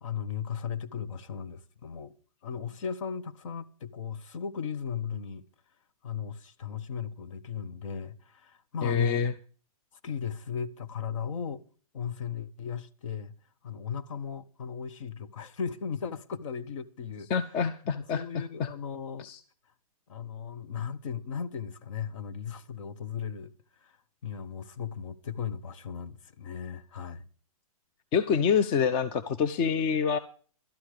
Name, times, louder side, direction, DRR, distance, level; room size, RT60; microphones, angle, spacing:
voice 1, 0.0-2.1 2.4-5.4 6.0-9.2 10.0-11.6 11.9-13.3 13.6-17.3 17.8-19.3 20.1-23.5 23.8-24.0 24.2-27.2, left 7 dB, 55° left, 1.4 m, -36 dB
voice 2, 8.8-9.3 17.3-18.7 19.2-19.4 28.1-30.2, left 6 dB, 30° left, 0.7 m, -26 dB
12.5 x 11.5 x 5.0 m
hypercardioid pair, 135°, 19 cm